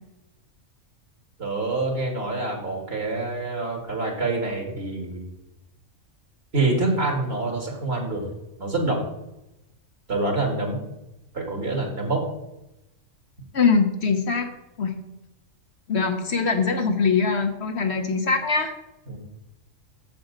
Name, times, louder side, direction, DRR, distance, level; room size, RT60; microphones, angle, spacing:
voice 1, 1.4-5.2 6.5-8.3 8.6-9.0 10.1-10.8 11.3-12.3 19.1-19.2, right 2 dB, 50° right, 1 dB, 2.1 m, -26 dB
voice 2, 13.5-14.5 14.8-15.0 15.9-18.7, left 4 dB, 60° left, 6 dB, 1.0 m, -22 dB
7.1 x 6.9 x 5.1 m, 0.92 s
omnidirectional pair, 1.3 m